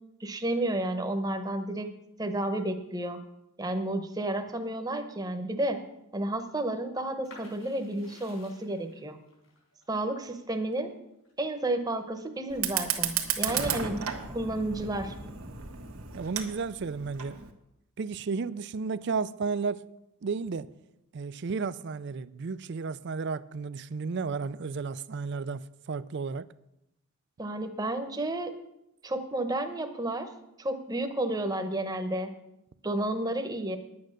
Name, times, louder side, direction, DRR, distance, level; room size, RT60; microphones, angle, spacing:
voice 1, 0.2-1.9 2.2-3.2 3.6-5.8 6.1-9.2 9.9-10.9 11.4-15.1 27.4-28.5 29.0-30.3 30.6-32.3 32.8-33.8, right 1 dB, 15° right, 1.0 m, -31 dB
sound 1, 7.2-12.9 13.3-14.2, left 2 dB, 75° left, 4.1 m, -54 dB
Fire, 12.5-17.5, right 8 dB, 80° right, 1.4 m, -33 dB
voice 2, 16.1-17.4 18.0-19.8 20.2-20.7 21.1-26.5, right 4 dB, 55° right, 0.4 m, -33 dB
10.5 x 8.7 x 6.5 m
head